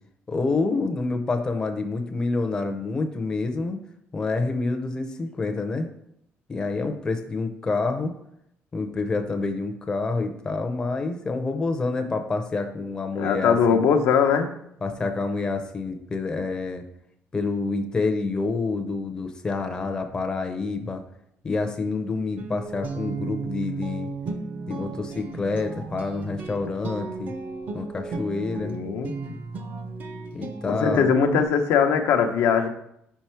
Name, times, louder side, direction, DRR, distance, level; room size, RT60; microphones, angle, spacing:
voice 1, 0.3-3.8 4.1-5.9 6.5-8.1 8.7-13.8 14.8-16.9 17.3-21.0 21.4-24.1 24.7-27.3 27.7-28.8 30.3-31.1, left 3 dB, 15° left, 5 dB, 0.5 m, -27 dB
voice 2, 13.2-14.5 28.6-29.1 30.7-32.7, left 6 dB, 85° left, 5 dB, 0.7 m, -21 dB
Guitar, 22.4-31.5, right 4 dB, 40° right, 0.5 m, -34 dB
5.3 x 4.5 x 4.4 m, 0.76 s
cardioid pair, 175°, 5 cm